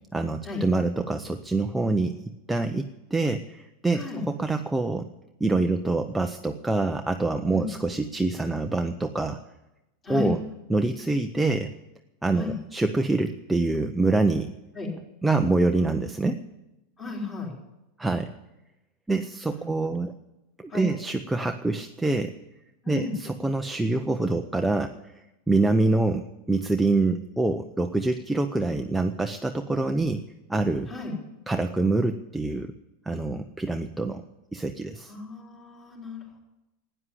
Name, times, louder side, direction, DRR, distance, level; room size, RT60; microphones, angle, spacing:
voice 1, 0.1-2.2 2.5-5.1 5.4-9.4 10.1-10.4 10.7-11.7 12.2-14.5 15.2-16.4 18.0-18.3 19.1-20.1 20.6-22.3 22.9-25.0 25.5-30.2 30.5-30.9 31.5-32.7 33.1-34.2 34.5-35.1, right 2 dB, 5° right, 5 dB, 0.6 m, -25 dB
voice 2, 10.0-10.4 12.3-12.5 14.8-14.9 17.0-17.5 19.6-19.9 20.7-20.9 22.8-23.1 30.9-31.1 35.0-36.4, left 3 dB, 20° left, -1 dB, 4.2 m, -34 dB
12.5 x 9.9 x 9.9 m, 0.95 s
supercardioid pair, 150°, 0 cm